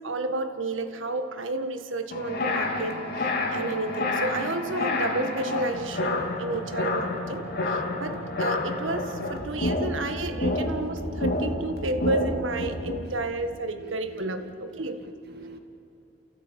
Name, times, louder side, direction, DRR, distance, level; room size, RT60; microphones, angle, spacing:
voice 1, 0.0-15.0, right 2 dB, 85° right, 7 dB, 1.7 m, -31 dB
sound 1, 2.1-13.0, left 2 dB, 55° left, 3.0 m, -29 dB
voice 2, 14.4-15.6, right 1 dB, 55° right, 5 dB, 2.2 m, -45 dB
29.0 x 16.0 x 8.8 m, 2.9 s
head